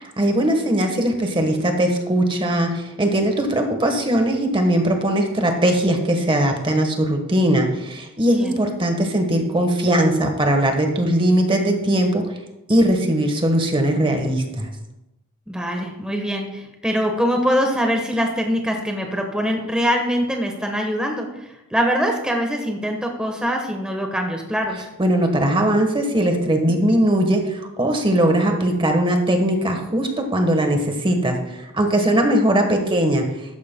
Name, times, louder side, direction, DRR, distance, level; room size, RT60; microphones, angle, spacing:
voice 1, 0.2-12.2 12.7-14.7 25.0-33.3, right 1 dB, 25° right, 4 dB, 1.3 m, -20 dB
voice 2, 15.5-24.9, equal, 5° right, 2 dB, 1.2 m, -23 dB
14.5 x 13.0 x 2.2 m, 0.94 s
head